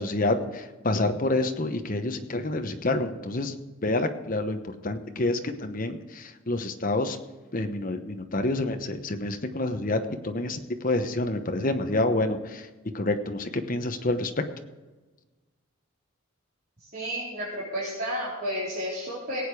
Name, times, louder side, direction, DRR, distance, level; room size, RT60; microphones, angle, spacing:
voice 1, 0.0-3.5 3.8-7.2 7.5-12.7 12.9-14.3, left 2 dB, 40° left, 7 dB, 1.0 m, -28 dB
voice 2, 16.8-19.4, equal, 45° right, -9 dB, 4.1 m, -32 dB
18.0 x 8.8 x 4.8 m, 1.2 s
head